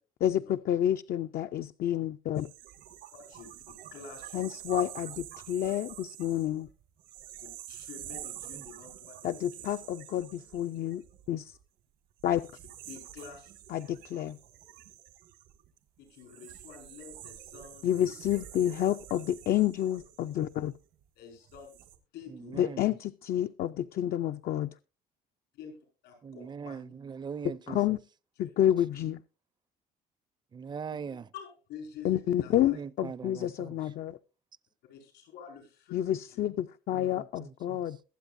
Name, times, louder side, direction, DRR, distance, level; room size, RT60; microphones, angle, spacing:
voice 1, 0.2-2.5 4.3-6.7 9.2-11.0 11.3-11.6 12.2-12.4 13.7-14.4 17.8-20.7 22.6-24.7 27.7-28.0 28.4-29.2 32.0-34.2 35.9-38.0, left 11 dB, 60° left, 0.5 m, -29 dB
sound 1, 2.4-11.6 12.2-20.9 21.4-22.0, right 12 dB, 85° right, 2.0 m, -47 dB
voice 2, 3.1-3.5 3.9-4.6 7.4-9.8 12.9-13.5 16.0-18.5 21.1-21.7 22.1-22.8 25.5-25.8 26.0-26.9 28.4-28.5 30.9-32.8 34.9-36.4, left 6 dB, 90° left, 5.1 m, -49 dB
voice 3, 22.3-23.0 26.2-28.0 30.5-31.3 32.7-33.8 36.9-37.8, right 6 dB, 25° right, 0.5 m, -41 dB
22.0 x 7.9 x 2.6 m
cardioid pair, 110°, 17 cm